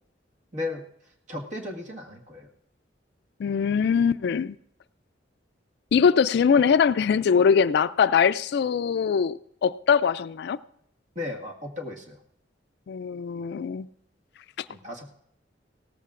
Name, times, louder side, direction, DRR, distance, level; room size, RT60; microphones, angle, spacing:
voice 1, 0.5-0.8 1.3-2.5 11.1-12.2 14.7-15.1, left 2 dB, 40° right, 1.7 m, -35 dB
voice 2, 3.4-4.6 5.9-10.6 12.9-13.9, left 6 dB, 65° left, 0.3 m, -22 dB
17.5 x 14.0 x 2.5 m
head